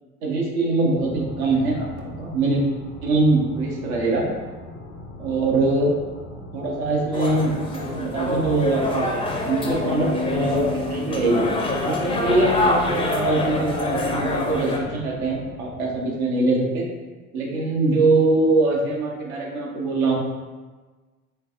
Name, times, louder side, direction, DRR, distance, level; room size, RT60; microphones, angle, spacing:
voice 1, 0.2-1.9 2.2-2.6 3.0-4.3 5.2-5.9 6.5-11.5 11.8-16.9 17.3-20.1, right 2 dB, 80° right, -2 dB, 0.8 m, -22 dB
sound 1, 1.0-16.1, left 1 dB, 90° left, 0.7 m, -39 dB
sound 2, 7.1-14.8, left 2 dB, 15° left, 0.4 m, -26 dB
sound 3, 9.7-14.9, left 5 dB, 60° right, 1.2 m, -35 dB
3.2 x 3.2 x 2.5 m, 1.3 s
hypercardioid pair, 60°, 42 cm